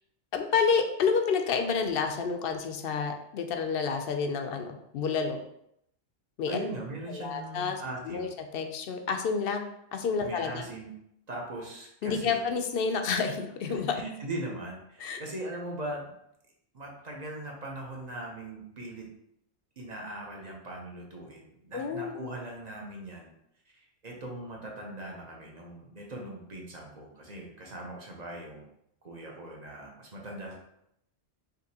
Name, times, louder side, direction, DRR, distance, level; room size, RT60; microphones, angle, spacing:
voice 1, 0.3-5.4 6.4-6.6 7.1-7.8 8.1-10.7 12.0-13.9 15.0-15.2 21.7-22.1, left 5 dB, 65° left, 5 dB, 0.7 m, -29 dB
voice 2, 6.5-8.3 10.2-10.9 11.3-12.4 13.7-16.1 16.7-19.1 19.8-23.3 23.7-28.6 29.0-30.6, right 1 dB, 40° right, -1 dB, 0.9 m, -40 dB
5.1 x 2.9 x 2.8 m, 0.77 s
omnidirectional pair, 1.2 m